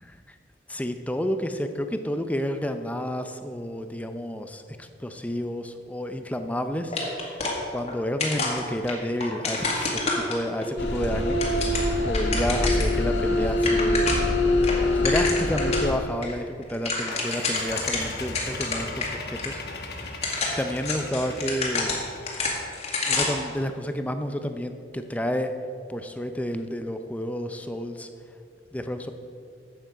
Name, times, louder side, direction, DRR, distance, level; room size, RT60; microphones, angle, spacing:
voice 1, 0.7-7.4 7.7-11.4 12.0-14.1 14.9-16.4 16.7-20.2 20.6-21.9 23.1-25.5 25.9-28.1 28.7-29.1, equal, 10° left, 7 dB, 0.5 m, -30 dB
sound 1, 6.9-7.9 8.2-10.7 11.2-13.0 13.3-13.4 13.6-14.3 14.6-15.9 16.2-16.3 16.6-19.1 19.4-19.5 20.0-23.5, left 3 dB, 35° left, 1.9 m, -28 dB
sound 2, 10.8-15.9, left 1 dB, 90° left, 1.5 m, -24 dB
sound 3, 17.1-22.6, left 3 dB, 60° left, 1.2 m, -38 dB
12.0 x 8.1 x 5.0 m, 2.4 s
head